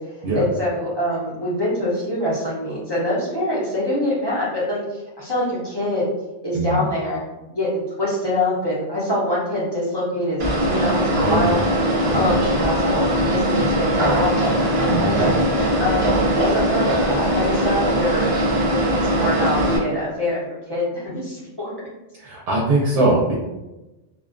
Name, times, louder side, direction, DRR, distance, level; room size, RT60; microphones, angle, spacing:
voice 1, 0.0-6.1 6.4-7.2 7.5-11.6 12.1-14.6 15.0-15.4 15.8-18.3 18.6-21.7, left 1 dB, 30° left, -9 dB, 0.5 m, -24 dB
voice 2, 6.5-6.9 11.2-11.5 12.0-12.3 14.9-15.3 22.2-23.3, right 2 dB, 90° right, -4 dB, 0.9 m, -21 dB
sound 1, 10.4-19.8, equal, 45° right, 0.5 m, -20 dB
2.4 x 2.2 x 2.4 m, 1.0 s
omnidirectional pair, 1.2 m